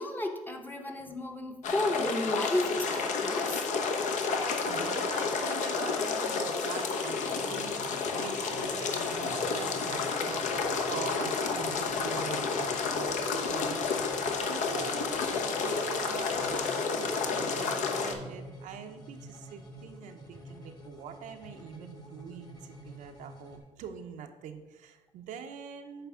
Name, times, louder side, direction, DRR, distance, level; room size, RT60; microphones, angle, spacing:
voice 1, 0.0-3.6 8.0-8.2, left 1 dB, 15° left, 4 dB, 0.8 m, -33 dB
sound 1, 1.6-18.1, left 4 dB, 75° left, 0.9 m, -31 dB
voice 2, 4.7-26.1, right 7 dB, 90° right, 6 dB, 0.8 m, -44 dB
sound 2, 7.0-23.6, right 1 dB, 30° left, 1.4 m, -49 dB
9.1 x 3.4 x 6.1 m, 1.2 s
cardioid pair, 135°, 13 cm